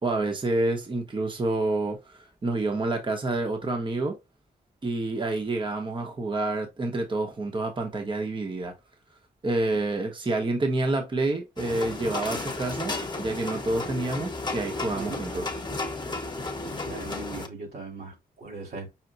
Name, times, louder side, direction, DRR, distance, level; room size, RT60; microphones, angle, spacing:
voice 1, 0.0-4.2 4.8-8.7 9.4-15.4, right 2 dB, 30° right, 0.9 m, -28 dB
sound 1, 11.6-17.5, left 2 dB, 25° left, 1.0 m, -33 dB
voice 2, 16.6-18.9, right 3 dB, 90° right, 2.5 m, -39 dB
5.8 x 2.2 x 3.8 m
wide cardioid pair, 115°, 16 cm